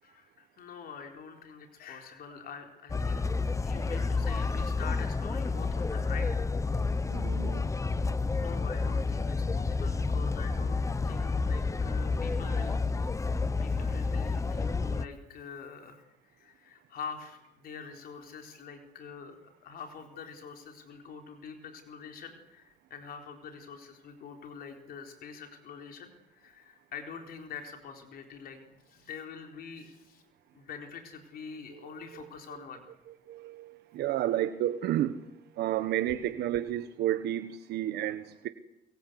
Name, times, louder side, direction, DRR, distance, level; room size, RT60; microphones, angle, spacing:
voice 1, 0.0-3.3 3.6-6.3 8.4-12.8 13.6-19.4 19.6-30.2 30.5-32.9, left 6 dB, 60° left, 4 dB, 4.2 m, -45 dB
sound 1, 2.9-15.0, left 4 dB, 20° left, 0.9 m, -30 dB
voice 2, 7.1-7.6 33.3-35.3 35.6-38.5, right 12 dB, 75° right, 10 dB, 1.4 m, -31 dB
23.5 x 23.0 x 8.2 m, 0.83 s
cardioid pair, 110°, 17 cm